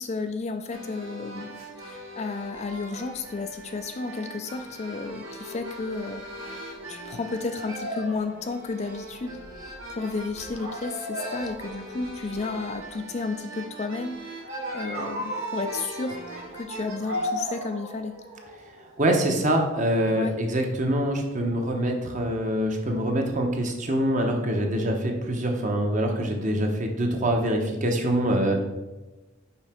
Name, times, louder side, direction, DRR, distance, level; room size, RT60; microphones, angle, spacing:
voice 1, 0.0-6.2 6.9-9.4 9.9-14.4 14.7-16.2 16.5-18.1 20.2-20.4, left 4 dB, 30° left, 7 dB, 0.3 m, -32 dB
sound 1, 0.7-20.3, right 1 dB, 65° right, 1.9 m, -37 dB
voice 2, 19.0-28.6, right 1 dB, 35° right, 2 dB, 0.9 m, -25 dB
5.6 x 5.1 x 4.4 m, 1.1 s
head